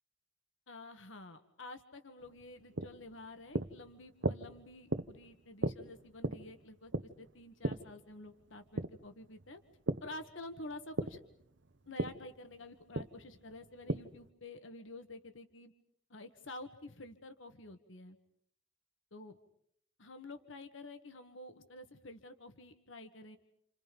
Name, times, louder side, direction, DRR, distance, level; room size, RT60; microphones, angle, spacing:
voice 1, 0.7-6.9 7.2-9.6 10.0-11.2 11.9-15.7 16.1-18.2 19.1-19.4 20.0-23.4, left 2 dB, 90° left, 8 dB, 1.7 m, -49 dB
sound 1, 2.2-10.1 10.5-14.3, right 2 dB, 70° right, 1.0 m, -38 dB
29.5 x 28.0 x 5.4 m, 0.70 s
head